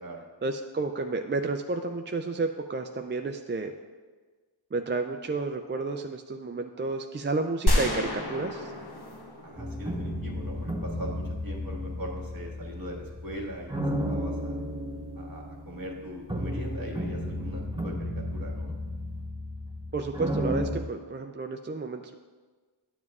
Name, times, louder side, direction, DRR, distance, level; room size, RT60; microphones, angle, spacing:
voice 1, 0.4-3.7 4.7-8.7 19.9-22.1, right 3 dB, 25° right, 5 dB, 0.3 m, -31 dB
sound 1, 7.7-10.6, equal, 50° left, 1.1 m, -29 dB
voice 2, 9.4-13.7 14.1-14.6 15.1-18.7, equal, 45° right, -2 dB, 1.7 m, -40 dB
sound 2, 9.6-20.8, equal, 10° right, 0.9 m, -33 dB
12.0 x 7.3 x 2.4 m, 1.4 s
wide cardioid pair, 50°, 47 cm